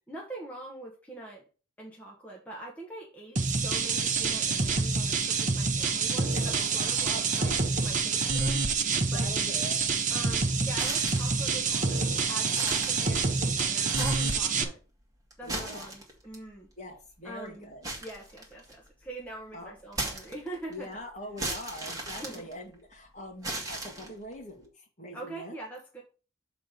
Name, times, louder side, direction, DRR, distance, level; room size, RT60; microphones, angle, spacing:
voice 1, 0.1-1.4 1.8-8.7 9.1-9.3 10.1-14.8 15.4-16.7 17.2-17.7 18.0-20.9 22.2-22.5 25.1-26.0, right 1 dB, 5° left, -2 dB, 1.2 m, -43 dB
sound 1, 3.4-14.6, right 4 dB, 40° right, 0.9 m, -27 dB
voice 2, 6.3-6.7 7.1-8.3 9.1-9.8 15.4-15.9 16.8-18.1 19.5-19.7 20.7-25.5, equal, 35° left, 1 dB, 2.1 m, -43 dB
sound 2, 10.7-11.4 11.9-12.0 12.4-13.5 13.8-14.5 15.3-16.4 17.8-18.9 19.9-20.7 21.4-22.9 23.4-24.3, right 2 dB, 15° right, 1.9 m, -36 dB
6.8 x 4.0 x 6.5 m, 0.36 s
head